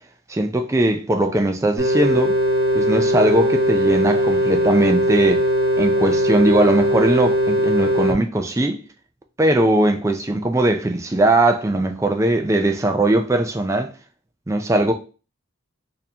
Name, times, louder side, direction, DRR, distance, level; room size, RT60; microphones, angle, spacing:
voice 1, 0.3-2.4 2.7-5.5 5.8-8.8 9.4-13.9 14.5-14.9, right 1 dB, 15° right, 0.3 m, -19 dB
sound 1, 1.8-8.1, equal, 50° right, 1.0 m, -19 dB
4.2 x 2.7 x 2.7 m
head